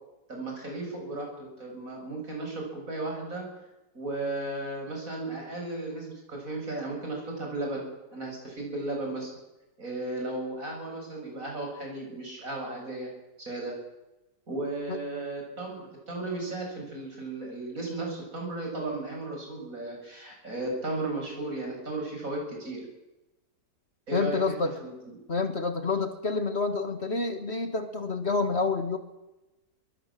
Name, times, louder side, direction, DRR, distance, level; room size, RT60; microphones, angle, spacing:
voice 1, 0.3-3.5 3.9-7.8 8.1-9.3 9.8-13.1 13.4-13.7 14.5-22.8 24.1-25.1, right 2 dB, 60° right, 0 dB, 8.3 m, -35 dB
voice 2, 24.1-24.8 25.3-29.0, left 4 dB, 45° left, 8 dB, 1.9 m, -28 dB
23.0 x 21.5 x 7.7 m, 1.0 s
omnidirectional pair, 1.7 m